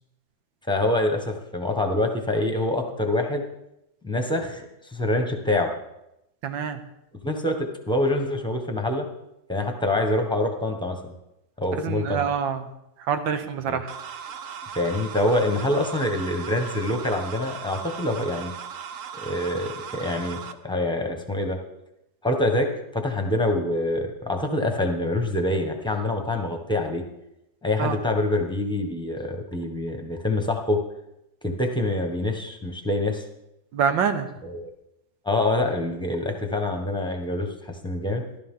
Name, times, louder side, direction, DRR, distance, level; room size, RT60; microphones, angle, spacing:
voice 1, 0.7-3.4 4.0-5.7 7.2-9.0 9.5-11.1 11.6-12.2 13.6-13.8 14.7-18.5 19.1-20.4 20.6-21.6 22.2-27.0 27.6-30.8 31.4-33.2 34.4-34.7 35.2-38.4, left 1 dB, 5° left, 3 dB, 1.0 m, -25 dB
voice 2, 6.4-6.8 11.8-12.7 13.0-13.9 27.8-28.0 33.7-34.3, right 7 dB, 85° right, 8 dB, 1.7 m, -26 dB
sound 1, 13.9-20.5, right 7 dB, 60° right, 0.9 m, -38 dB
14.5 x 12.5 x 3.8 m, 0.86 s
omnidirectional pair, 2.0 m